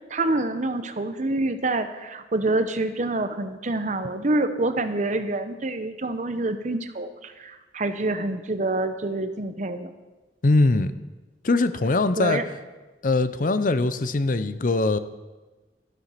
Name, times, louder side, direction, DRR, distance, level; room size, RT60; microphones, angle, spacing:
voice 1, 0.1-9.9 12.2-12.4, right 2 dB, 45° right, 9 dB, 0.9 m, -27 dB
voice 2, 10.4-10.9 11.4-12.4 13.0-15.0, left 2 dB, 50° left, 13 dB, 0.6 m, -21 dB
13.5 x 11.0 x 5.8 m, 1.2 s
head